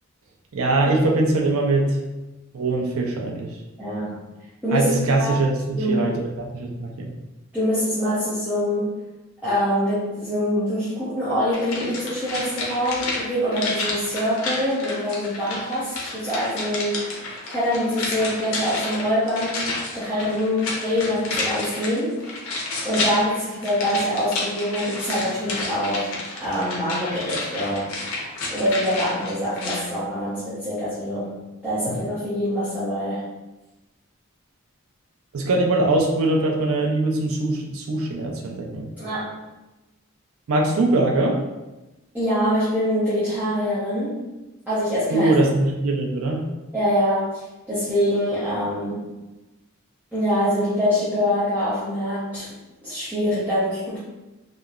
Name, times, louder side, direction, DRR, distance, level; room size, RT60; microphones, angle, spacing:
voice 1, 0.5-2.0 2.5-3.6 4.7-7.1 35.3-38.9 40.5-41.4 45.1-46.4, right 2 dB, 75° right, 0 dB, 0.5 m, -22 dB
voice 2, 3.8-4.2 4.6-5.4 5.7-6.1 7.5-8.9 9.4-17.1 17.5-19.6 19.9-22.3 22.8-26.1 26.4-27.9 28.5-31.3 31.6-33.2 39.0-39.4 42.1-44.2 44.7-45.3 46.7-49.1 50.1-52.5 52.8-54.0, equal, 5° right, -14 dB, 0.6 m, -24 dB
sound 1, 11.5-29.9 30.2-30.3, left 2 dB, 75° left, 0.6 m, -30 dB
2.8 x 2.0 x 2.3 m, 1.1 s
head